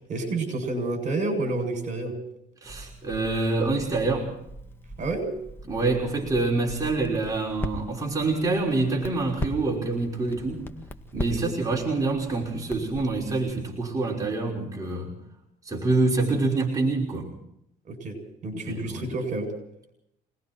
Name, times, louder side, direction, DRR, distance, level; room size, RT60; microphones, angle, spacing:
voice 1, 0.1-2.1 5.0-5.3 11.3-11.4 17.9-19.5, right 2 dB, 45° right, 6 dB, 7.8 m, -29 dB
Crackle, 2.6-13.5, left 1 dB, 15° left, 1.8 m, -39 dB
voice 2, 2.6-4.3 5.7-10.6 11.1-15.1 15.6-17.3 18.5-19.1, right 3 dB, 20° right, -2 dB, 5.7 m, -26 dB
28.0 x 20.0 x 4.6 m, 0.76 s
cardioid pair, 110°, 17 cm